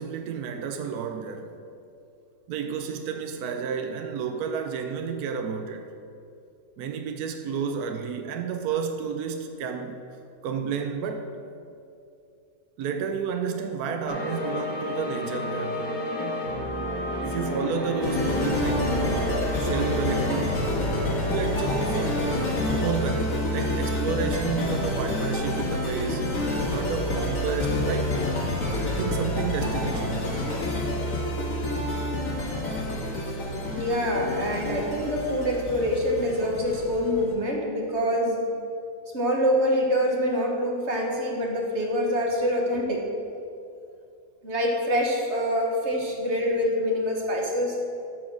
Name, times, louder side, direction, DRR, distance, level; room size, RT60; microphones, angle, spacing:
voice 1, 0.0-1.6 2.5-5.9 6.8-10.0 10.4-11.4 12.8-15.9 16.2-16.5 17.2-20.7 21.3-26.3 26.7-28.2 29.0-30.2, right 6 dB, 75° right, 5 dB, 1.2 m, -31 dB
sound 1, 14.1-22.8, left 1 dB, 15° left, 1.7 m, -31 dB
sound 2, 18.0-37.3, left 1 dB, 55° left, 1.9 m, -28 dB
voice 2, 33.7-38.4 39.1-43.0 44.4-47.8, equal, 45° right, 0 dB, 1.6 m, -25 dB
12.5 x 4.7 x 6.2 m, 2.5 s
omnidirectional pair, 1.7 m